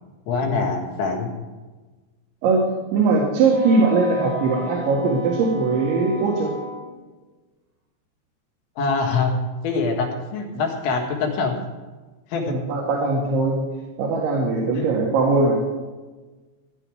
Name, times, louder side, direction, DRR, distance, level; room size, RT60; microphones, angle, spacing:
voice 1, 0.3-1.3 8.8-9.3 9.6-11.6 12.3-12.6, left 4 dB, 85° left, 0 dB, 4.3 m, -24 dB
voice 2, 2.9-6.5 12.5-13.6 14.0-15.6, right 3 dB, 85° right, -2 dB, 4.2 m, -20 dB
Wind instrument woodwind instrument, 3.5-6.9, equal, 45° right, 6.6 m, -35 dB
16.5 x 10.5 x 4.9 m, 1.3 s
omnidirectional pair, 5.2 m